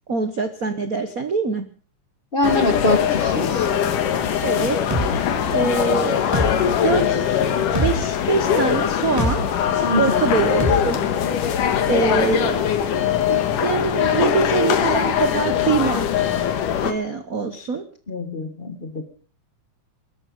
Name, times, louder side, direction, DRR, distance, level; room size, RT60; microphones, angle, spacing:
voice 1, 0.1-1.6 4.4-5.1 5.5-6.2 6.8-7.4 7.8-9.4 10.0-11.0 11.9-12.5 13.3-16.1 16.8-17.8, right 5 dB, 85° right, 9 dB, 0.7 m, -24 dB
voice 2, 2.3-3.7 9.8-10.4 18.1-19.0, left 1 dB, 60° left, 7 dB, 0.5 m, -23 dB
sound 1, 2.4-16.9, left 9 dB, 90° left, 3.1 m, -21 dB
sound 2, 4.9-5.1 6.3-6.5 7.7-7.9 9.2-9.4 10.6-10.8, equal, 10° right, 2.5 m, -21 dB
21.0 x 12.5 x 5.5 m, 0.43 s
omnidirectional pair, 3.6 m